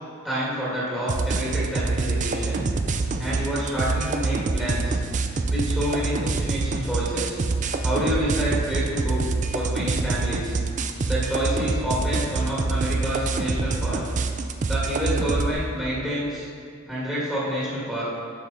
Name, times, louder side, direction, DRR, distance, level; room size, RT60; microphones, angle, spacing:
voice 1, 0.2-2.7 3.2-5.0 5.5-7.4 7.8-10.5 11.0-14.0 14.6-16.5 16.9-18.0, equal, ahead, -9 dB, 1.9 m, -28 dB
sound 1, 1.1-15.5, right 3 dB, 35° right, 0.4 m, -26 dB
11.5 x 5.1 x 4.1 m, 2.3 s
head